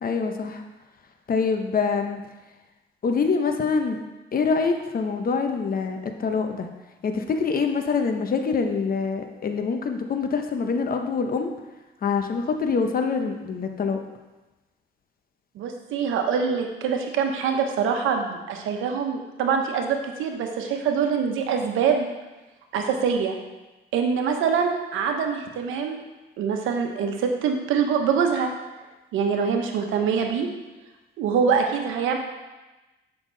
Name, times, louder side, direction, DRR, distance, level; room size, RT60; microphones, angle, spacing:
voice 1, 0.0-0.6 1.3-2.2 3.0-4.0 4.3-6.7 7.0-11.5 12.0-14.0, left 5 dB, 45° left, 5 dB, 0.9 m, -25 dB
voice 2, 15.5-22.1 22.7-23.4 23.9-26.0 26.4-28.5 29.1-30.5 31.2-32.2, right 6 dB, 90° right, 4 dB, 1.1 m, -24 dB
8.2 x 5.9 x 4.0 m, 1.1 s
cardioid pair, 90°, 20 cm